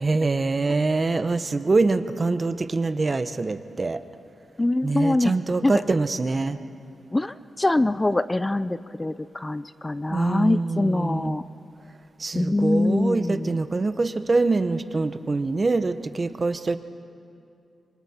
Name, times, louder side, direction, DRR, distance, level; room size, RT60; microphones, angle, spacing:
voice 1, 0.0-4.0 4.8-6.6 10.1-11.4 12.2-16.8, right 3 dB, 35° right, 11 dB, 0.9 m, -24 dB
voice 2, 4.6-5.3 5.6-5.8 7.1-11.4 12.3-13.6, left 2 dB, 20° left, 14 dB, 0.4 m, -24 dB
25.5 x 24.0 x 4.4 m, 2.6 s
cardioid pair, 80°, 0 cm